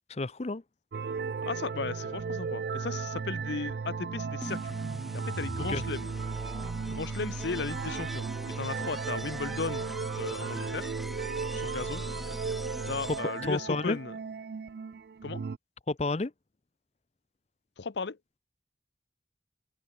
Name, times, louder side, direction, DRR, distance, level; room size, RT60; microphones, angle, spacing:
voice 1, 0.1-0.6 5.6-5.8 13.4-14.0 15.9-16.3, left 3 dB, 35° left, 0.6 m, -30 dB
sound 1, 0.9-15.6, right 5 dB, 55° right, 0.4 m, -36 dB
voice 2, 1.4-4.8 5.1-6.1 6.9-10.9 11.5-12.0 12.9-14.1 15.2-15.4 17.8-18.2, left 4 dB, 70° left, 0.7 m, -36 dB
sound 2, 4.4-13.6, equal, ahead, 1.9 m, -41 dB
head